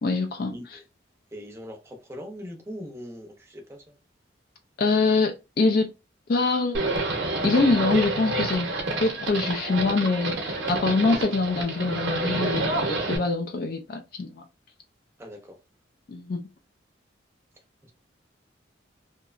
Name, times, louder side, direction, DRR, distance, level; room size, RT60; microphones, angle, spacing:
voice 1, 0.0-0.8 4.8-5.9 6.3-6.8 7.4-8.7 9.0-14.4 16.1-16.4, left 3 dB, 50° left, 0.3 m, -24 dB
voice 2, 0.5-0.8 1.3-3.9 15.2-15.6 17.8-17.9, equal, 15° right, 0.5 m, -41 dB
Livestock farm animals working animals, 6.7-13.2, right 2 dB, 75° right, 0.7 m, -28 dB
2.8 x 2.1 x 2.4 m
head